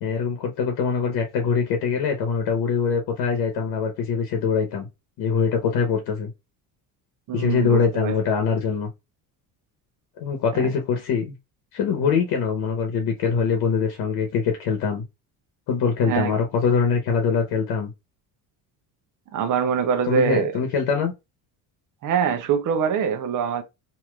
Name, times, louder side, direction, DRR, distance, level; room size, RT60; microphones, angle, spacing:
voice 1, 0.0-4.9 5.2-6.3 7.3-8.9 10.2-11.3 11.7-15.0 15.7-17.9 20.1-21.1, left 6 dB, 70° left, 0.9 m, -23 dB
voice 2, 7.3-8.2 10.6-10.7 16.0-16.3 19.3-20.5 22.0-23.6, right 6 dB, 50° right, 0.8 m, -24 dB
3.1 x 2.8 x 2.3 m
cardioid pair, 135°, 40 cm